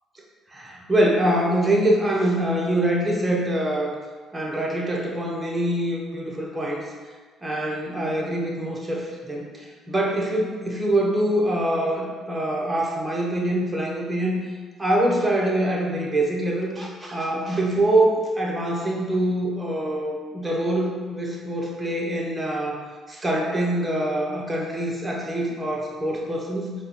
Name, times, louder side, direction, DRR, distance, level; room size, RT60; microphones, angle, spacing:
voice 1, 0.5-3.9 4.3-6.8 7.4-14.4 14.8-22.8 23.1-26.7, right 1 dB, 20° right, -2 dB, 0.9 m, -24 dB
4.6 x 2.2 x 3.2 m, 1.5 s
hypercardioid pair, 55°, 0 cm